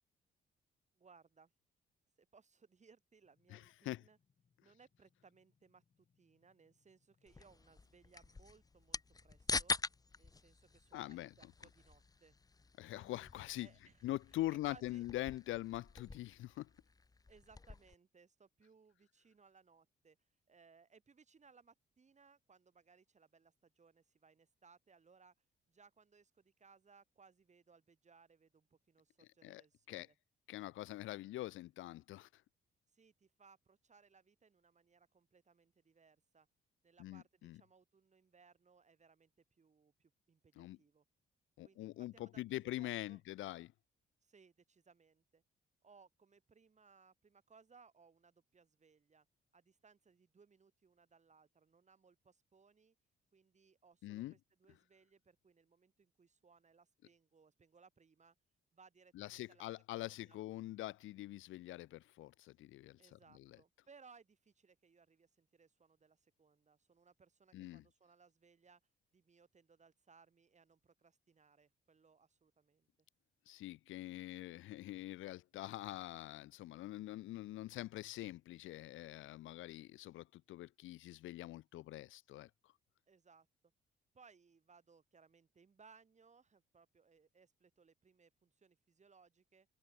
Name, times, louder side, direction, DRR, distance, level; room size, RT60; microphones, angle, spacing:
voice 1, 1.0-1.5 2.2-4.2 4.6-9.7 10.1-12.4 12.9-13.3 13.6-14.1 14.6-15.0 17.3-20.2 20.5-25.3 25.7-30.2 32.9-36.5 36.8-41.1 41.6-43.2 44.2-45.4 45.8-49.3 49.5-53.0 53.3-58.4 58.7-59.7 59.9-60.4 63.0-68.8 69.1-72.9 83.1-83.5 84.1-89.7, right 5 dB, 35° right, 7.2 m, -66 dB
sound 1, 3.2-14.7, left 6 dB, 40° left, 4.9 m, -80 dB
voice 2, 3.5-4.0 10.9-11.3 12.8-13.7 14.0-16.7 29.4-29.6 29.9-30.1 30.5-32.3 37.0-37.6 40.6-40.8 41.6-43.7 54.0-54.3 59.1-63.6 67.5-67.8 73.5-82.5, left 16 dB, 80° left, 0.7 m, -44 dB
sound 2, 7.3-17.9, left 3 dB, 20° left, 0.8 m, -45 dB
cardioid pair, 90°, 20 cm